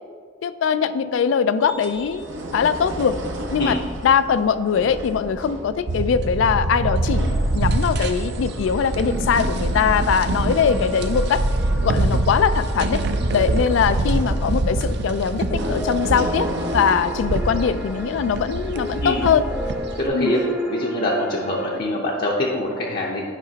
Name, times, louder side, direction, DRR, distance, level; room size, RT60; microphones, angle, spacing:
voice 1, 0.4-2.2 2.5-3.1 3.5-3.8 4.0-11.4 11.8-13.0 13.3-16.5 16.7-19.4 20.1-20.3, left 7 dB, 85° left, 12 dB, 0.3 m, -21 dB
sound 1, 1.6-19.8 20.4-20.5, right 1 dB, 85° right, 0.9 m, -36 dB
sound 2, 5.9-20.1, right 2 dB, 60° right, 0.5 m, -24 dB
sound 3, 10.5-21.8, equal, 5° right, 0.6 m, -33 dB
voice 2, 20.0-23.2, left 1 dB, 55° left, -3 dB, 0.7 m, -24 dB
9.0 x 5.0 x 2.8 m, 2.1 s
head